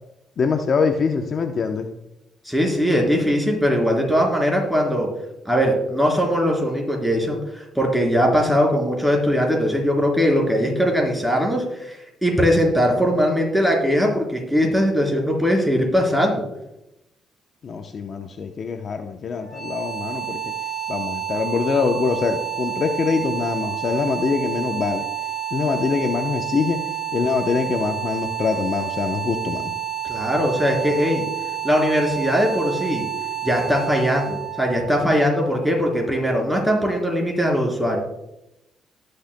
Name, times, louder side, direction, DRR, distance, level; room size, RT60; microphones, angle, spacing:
voice 1, 0.4-1.9 17.6-20.4 20.9-25.0 25.5-26.8 27.1-29.7, left 5 dB, 50° left, 5 dB, 0.7 m, -24 dB
voice 2, 2.5-5.1 5.5-16.4 30.0-31.2 31.6-33.0 33.4-38.0, equal, ahead, -1 dB, 3.6 m, -20 dB
sound 1, 19.4-36.3, right 10 dB, 30° left, 2.6 m, -30 dB
19.5 x 6.6 x 2.2 m, 0.89 s
cardioid pair, 90°, 0 cm